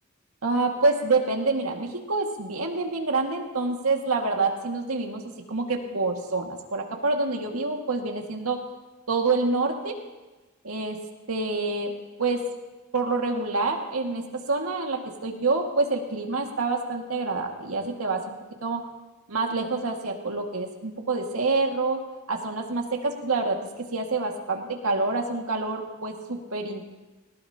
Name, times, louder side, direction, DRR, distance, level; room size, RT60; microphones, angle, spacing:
voice 1, 0.4-5.2 5.5-8.6 9.1-9.9 10.6-11.0 11.3-11.9 12.2-12.4 12.9-18.8 19.3-22.0 22.3-26.9, right 3 dB, 85° right, 2 dB, 2.0 m, -27 dB
19.0 x 18.5 x 2.9 m, 1.2 s
head